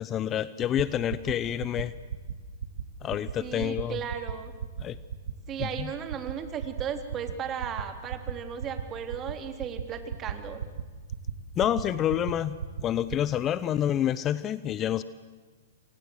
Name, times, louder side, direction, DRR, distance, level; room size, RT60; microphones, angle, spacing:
voice 1, 0.0-1.9 3.0-4.0 4.8-5.0 5.6-5.9 11.6-12.6 12.8-15.0, left 10 dB, 25° left, 16 dB, 0.8 m, -28 dB
sound 1, 0.6-0.8 1.1-1.3 1.6-1.8 2.1-2.3 2.6-2.8 3.1-3.3 3.6-3.8 4.1-4.3 4.6-4.8 5.1-5.3 5.6-5.8 6.1-6.3 6.6-6.8 7.1-7.3 7.6-7.8 8.1-8.3 8.6-8.8 9.1-9.3 9.6-9.8 10.1-10.3 10.6-10.8 11.1-11.3 11.6-11.8 12.1-12.3 12.6-12.8 13.1-13.3, right 8 dB, 70° right, 2.1 m, -34 dB
voice 2, 3.4-4.5 5.5-10.6, right 8 dB, 30° right, 7 dB, 3.5 m, -35 dB
28.5 x 24.5 x 7.9 m, 1.5 s
hypercardioid pair, 115°, 0 cm